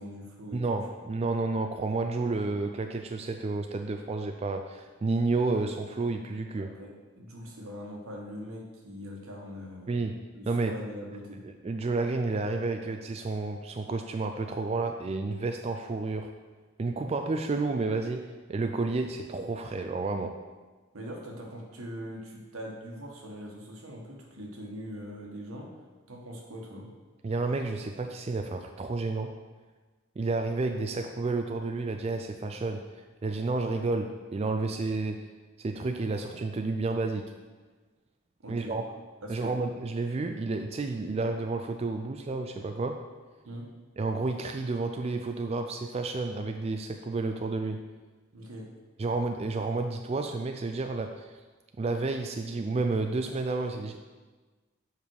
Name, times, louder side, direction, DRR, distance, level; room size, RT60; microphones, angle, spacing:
voice 1, 0.0-0.8 6.6-11.4 20.9-25.7 26.1-26.9 38.4-38.8 39.2-39.5 43.4-43.7 48.3-48.7, equal, 90° right, 0 dB, 1.5 m, -42 dB
voice 2, 0.5-6.7 9.9-10.8 11.6-16.3 16.8-20.4 27.2-29.4 30.2-35.3 35.6-37.3 38.5-38.8 39.3-43.0 44.0-47.8 49.0-51.4 51.8-54.0, right 3 dB, 30° right, 5 dB, 0.3 m, -31 dB
7.4 x 5.3 x 4.7 m, 1.3 s
head